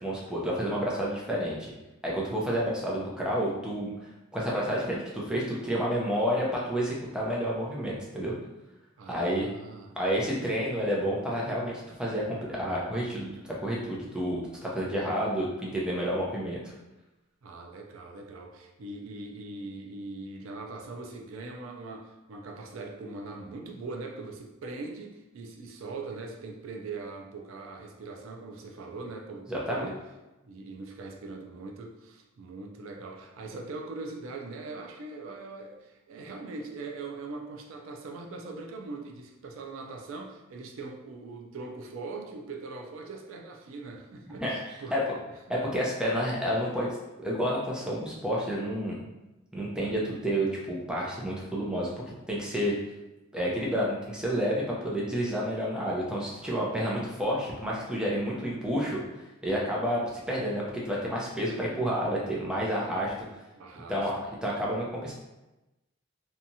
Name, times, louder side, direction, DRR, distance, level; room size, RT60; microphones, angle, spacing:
voice 1, 0.0-1.7 2.0-3.9 4.3-8.3 9.1-9.5 10.0-16.6 29.5-29.8 44.4-44.5 44.9-45.0 45.5-46.9 47.2-49.0 49.5-51.9 52.3-52.7 53.3-59.0 59.4-60.0 60.3-63.1 63.9-65.1, equal, 5° right, -5 dB, 0.5 m, -30 dB
voice 2, 9.0-10.0 17.4-30.0 30.4-45.2 56.4-56.5 63.6-64.3, right 3 dB, 90° right, 2 dB, 0.4 m, -41 dB
2.8 x 2.3 x 2.6 m, 1.0 s
head